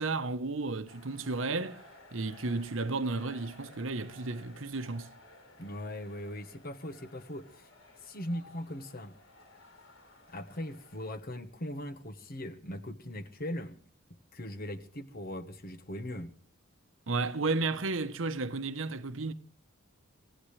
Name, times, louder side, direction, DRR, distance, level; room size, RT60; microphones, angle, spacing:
voice 1, 0.0-1.8 2.1-5.1 17.1-19.3, right 3 dB, 70° right, 0.9 m, -33 dB
sound 1, 0.9-11.1, left 2 dB, 80° left, 5.1 m, -56 dB
voice 2, 5.6-7.7 8.0-9.1 10.3-13.8 14.3-16.3, left 1 dB, 45° left, 1.3 m, -40 dB
25.5 x 16.5 x 3.3 m
head